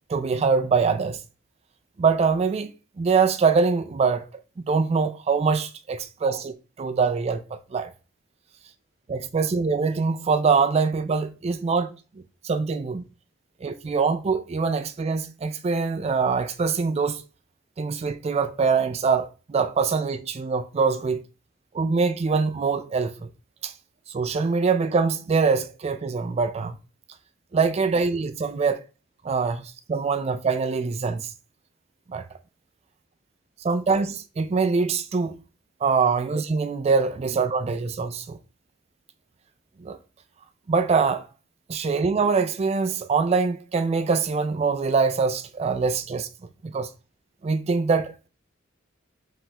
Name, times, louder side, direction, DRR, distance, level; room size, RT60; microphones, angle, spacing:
voice 1, 0.1-1.2 2.0-2.7 3.0-4.3 4.6-7.4 7.7-7.9 9.1-12.0 12.4-13.0 13.6-17.2 17.8-21.2 21.7-23.3 23.6-23.7 24.1-26.8 27.5-28.8 29.2-31.3 32.1-32.2 33.6-35.4 35.8-38.4 39.8-40.0 40.7-41.3 41.7-46.3 46.6-46.9 47.4-48.3, right 5 dB, 30° right, 0.3 m, -24 dB
4.9 x 3.4 x 2.9 m
head